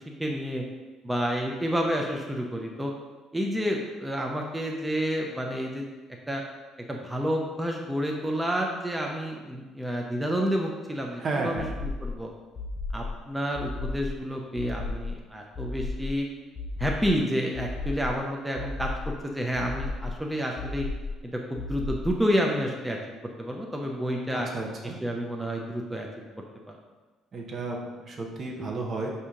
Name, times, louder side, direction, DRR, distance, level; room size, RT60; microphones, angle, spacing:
voice 1, 0.2-0.6 1.0-2.9 3.3-5.8 6.3-6.4 6.9-11.7 12.0-12.3 12.9-16.3 16.8-20.9 21.5-23.0 23.4-24.5 25.0-26.1 26.7-26.8, equal, 10° right, 0 dB, 0.6 m, -29 dB
voice 2, 11.2-11.7 24.3-25.0 27.3-29.1, right 3 dB, 50° right, 0 dB, 0.9 m, -32 dB
sound 1, 11.6-12.2 12.5-13.2 13.5-14.2 14.6-15.2 15.5-16.2 16.5-17.2 17.5-18.2 18.6-19.2 19.6-20.2 20.6-21.2 21.6-22.2, left 3 dB, 35° left, 0.6 m, -34 dB
5.0 x 2.8 x 3.6 m, 1.2 s
supercardioid pair, 70°, 0 cm